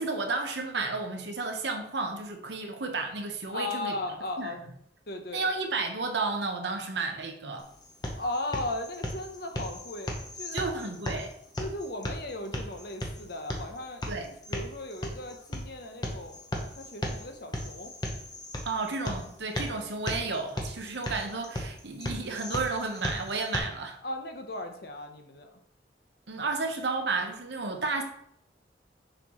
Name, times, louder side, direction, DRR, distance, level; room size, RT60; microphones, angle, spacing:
voice 1, 0.0-4.0 4.4-4.5 5.3-7.7 10.5-11.3 14.1-14.3 18.6-24.0 26.3-28.0, right 3 dB, 70° right, 4 dB, 1.0 m, -32 dB
voice 2, 3.5-4.6 5.1-5.5 8.2-10.7 11.6-16.4 16.8-17.9 24.0-25.6, left 2 dB, 55° left, 5 dB, 0.8 m, -37 dB
sound 1, 7.6-23.6, left 1 dB, 20° left, 0.8 m, -37 dB
6.7 x 5.6 x 3.1 m, 0.71 s
head